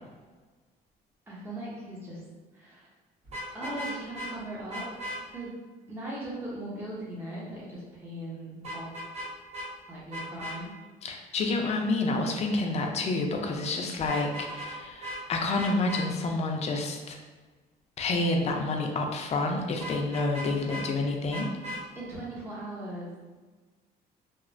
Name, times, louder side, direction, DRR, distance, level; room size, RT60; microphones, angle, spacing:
voice 1, 1.3-2.2 2.5-2.9 3.5-4.9 5.3-5.6 5.9-9.0 9.9-10.8 21.9-23.1, right 1 dB, 15° right, -6 dB, 0.6 m, -39 dB
Vehicle horn car horn honking, 3.2-4.3 4.7-5.2 8.6-9.3 9.5-9.7 10.1-10.6 14.0-14.8 15.0-15.2 15.6-16.0 19.8-20.9 21.3-21.8, equal, 40° right, 1.2 m, -37 dB
voice 2, 11.0-17.2 18.0-21.5, left 2 dB, 40° left, 2 dB, 0.4 m, -29 dB
3.0 x 2.0 x 2.5 m, 1.3 s
cardioid pair, 110°, 17 cm